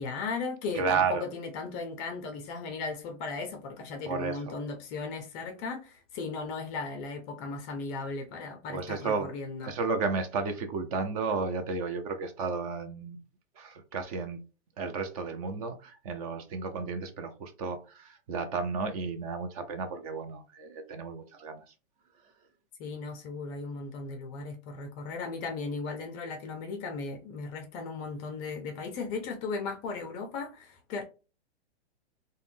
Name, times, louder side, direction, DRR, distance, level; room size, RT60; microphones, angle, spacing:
voice 1, 0.0-9.7 22.8-31.0, left 4 dB, 25° left, 0.4 m, -36 dB
voice 2, 0.7-1.3 4.1-4.5 8.7-9.3 9.6-13.2 13.6-14.4 14.8-21.6, right 4 dB, 35° right, 0.4 m, -32 dB
3.4 x 2.1 x 2.5 m
hypercardioid pair, 130°, 34 cm